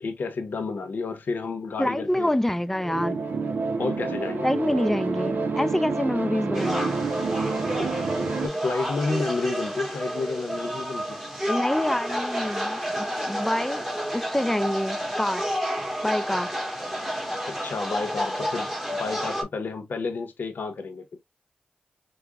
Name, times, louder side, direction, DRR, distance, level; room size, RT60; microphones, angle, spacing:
voice 1, 0.0-2.3 3.8-4.5 7.8-7.9 8.3-11.2 17.4-18.7 19.0-21.1, left 4 dB, 75° left, 0.8 m, -30 dB
voice 2, 1.8-3.2 4.4-7.0 11.5-13.9 14.1-15.4 16.0-16.5, left 1 dB, 10° left, 0.4 m, -26 dB
sound 1, 2.7-8.5, right 4 dB, 80° right, 0.6 m, -28 dB
sound 2, 6.5-19.4, equal, 10° right, 1.3 m, -30 dB
4.8 x 2.1 x 2.3 m
cardioid pair, 60°, 3 cm